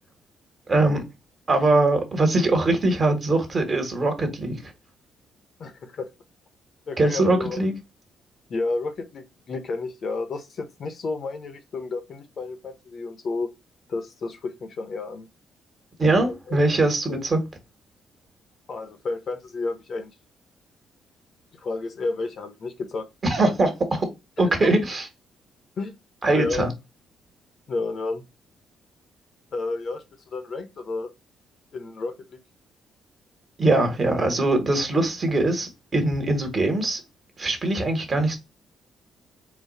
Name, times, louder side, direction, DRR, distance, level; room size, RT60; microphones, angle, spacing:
voice 1, 0.7-1.0 1.5-4.6 7.0-7.7 16.0-17.4 23.2-23.7 24.4-25.0 26.2-26.7 33.6-37.0 37.4-38.4, right 2 dB, 35° right, 1.4 m, -22 dB
voice 2, 5.6-6.1 6.9-7.6 8.5-13.5 13.9-15.3 16.2-16.6 17.1-17.3 18.7-20.1 21.6-23.1 23.4-23.5 24.4-24.7 25.8-25.9 26.3-26.7 27.7-28.2 29.5-30.0 30.3-31.1 31.7-32.4, left 3 dB, 55° left, 0.9 m, -31 dB
4.0 x 2.3 x 4.1 m
cardioid pair, 90°, 0 cm